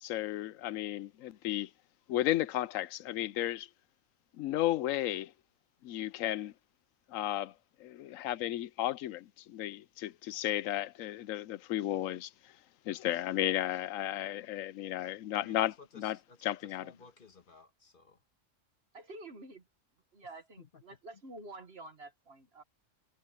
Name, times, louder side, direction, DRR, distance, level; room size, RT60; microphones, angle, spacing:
voice 1, 0.0-1.7 2.1-3.7 4.4-5.3 5.8-6.5 7.1-7.5 7.8-12.3 12.9-16.2 16.4-16.9, left 13 dB, 85° left, 1.0 m, -34 dB
voice 2, 15.4-18.2 20.3-20.8, left 4 dB, 45° left, 1.5 m, -57 dB
voice 3, 18.9-19.6 20.1-22.6, right 2 dB, 55° right, 1.9 m, -49 dB
omnidirectional pair, 1.3 m